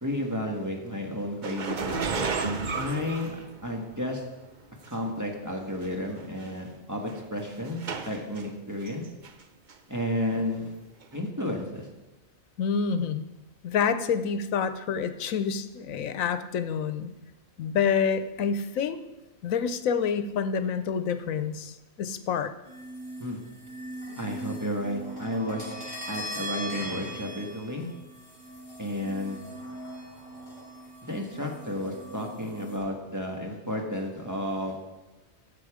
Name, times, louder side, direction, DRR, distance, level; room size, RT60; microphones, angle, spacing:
voice 1, 0.0-2.3 2.7-4.2 4.9-9.0 9.9-10.7 11.1-11.9 23.2-23.4 24.2-25.7 26.1-27.9 28.8-29.4 31.0-34.8, left 1 dB, 15° right, 0 dB, 1.6 m, -32 dB
sound 1, 1.4-4.0 4.8-4.9 5.8-5.9 6.2-6.5 7.1-8.4 8.9-9.4 9.7-9.8 11.0-11.1, right 4 dB, 40° right, 0.8 m, -32 dB
voice 2, 12.6-13.3 13.6-17.1 17.6-19.0 19.4-22.5, left 6 dB, 85° left, 11 dB, 1.2 m, -28 dB
sound 2, 22.6-32.8, right 1 dB, 65° right, 4.9 m, -40 dB
15.5 x 6.9 x 5.0 m, 1.1 s
omnidirectional pair, 1.4 m